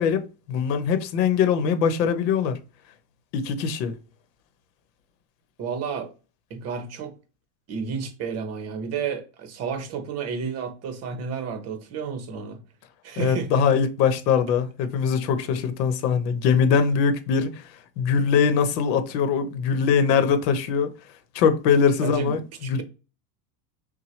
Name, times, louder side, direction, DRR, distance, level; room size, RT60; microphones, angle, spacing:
voice 1, 0.0-2.6 3.3-4.0 13.2-17.7 18.0-20.9 21.3-22.8, left 6 dB, 85° left, 0.9 m, -22 dB
voice 2, 5.6-6.1 6.5-7.1 7.7-12.6 13.0-13.5 22.0-22.8, right 6 dB, 30° right, 0.8 m, -31 dB
5.8 x 2.2 x 3.1 m
cardioid pair, 160°, 48 cm